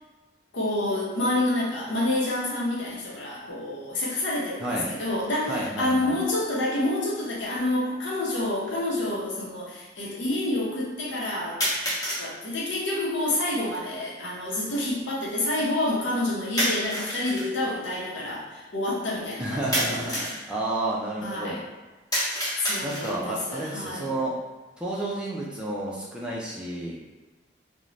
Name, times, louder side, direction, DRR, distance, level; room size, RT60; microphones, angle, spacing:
voice 1, 0.5-11.6 12.2-20.2 21.2-21.6 22.6-24.1, left 1 dB, 80° left, -4 dB, 0.7 m, -28 dB
voice 2, 5.5-6.1 19.4-21.6 22.8-24.3 24.8-27.0, right 1 dB, 5° right, -6 dB, 0.4 m, -31 dB
sound 1, 7.2-7.3 8.3-8.4 11.6-12.3 16.6-17.5 19.7-20.4 22.1-23.3, equal, 20° left, 0.8 m, -28 dB
2.5 x 2.1 x 3.1 m, 1.2 s
head